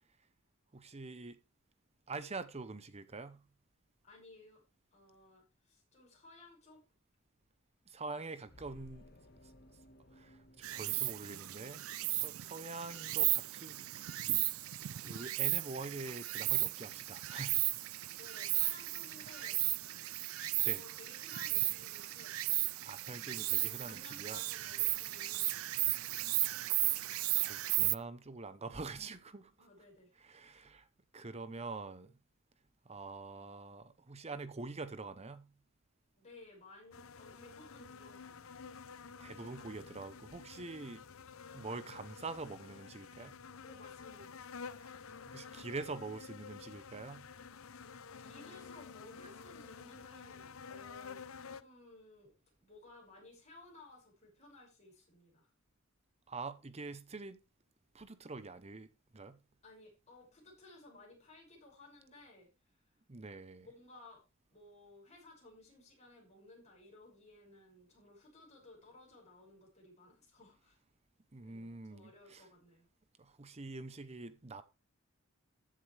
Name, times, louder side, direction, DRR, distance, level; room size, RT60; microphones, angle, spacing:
voice 1, 0.7-1.4 2.1-3.4 7.9-9.0 10.2-10.4 10.7-13.9 14.3-14.5 15.0-17.7 20.6-20.8 22.8-24.4 26.3-26.8 27.3-29.7 30.2-30.9 31.1-32.1 32.9-35.5 39.2-41.0 41.5-43.4 44.8-44.9 45.3-47.3 56.3-57.4 57.9-59.4 63.1-63.7 71.3-72.5 73.2-74.6, right 3 dB, 30° right, 0.8 m, -45 dB
voice 2, 4.0-4.6 4.9-6.8 8.0-8.2 8.6-9.3 12.0-12.3 18.2-19.6 20.6-22.4 23.6-25.8 29.6-30.2 30.5-30.6 36.2-38.5 43.6-44.5 48.1-52.3 52.6-55.5 59.6-62.5 63.6-64.2 64.5-70.8 71.4-72.9, left 2 dB, 35° left, 6.1 m, -58 dB
sound 1, 8.4-11.9, equal, 50° left, 1.6 m, -60 dB
Insect, 10.6-28.0, right 19 dB, 90° right, 0.5 m, -35 dB
sound 2, 36.9-51.6, left 5 dB, 80° left, 0.7 m, -50 dB
14.0 x 7.6 x 3.3 m
head